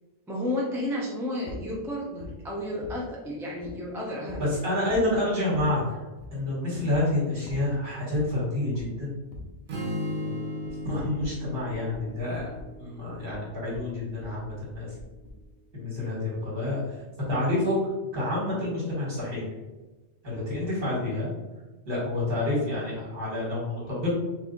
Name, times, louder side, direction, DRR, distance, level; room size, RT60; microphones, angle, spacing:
voice 1, 0.3-4.4 14.3-14.4, left 1 dB, 5° right, -5 dB, 0.5 m, -32 dB
sound 1, 1.5-1.7 2.2-2.3 2.8-3.0 3.6-3.7 4.3-4.5 4.9-5.1 5.5-5.7 6.2-6.3 6.9-7.0 7.5-7.6 8.1-8.3 8.7-8.9 9.3-9.5 10.6-12.7 13.1-15.4, left 2 dB, 70° left, 1.0 m, -42 dB
voice 2, 4.4-6.0 6.3-9.1 10.0-10.5 10.8-12.5 12.8-14.9 15.7-17.0 17.3-17.8 18.1-19.4 20.2-21.3 21.9-24.1, left 1 dB, 45° right, -6 dB, 1.7 m, -28 dB
Strum, 9.7-13.8, left 1 dB, 65° right, 1.0 m, -36 dB
3.3 x 2.6 x 3.8 m, 1.2 s
omnidirectional pair, 1.2 m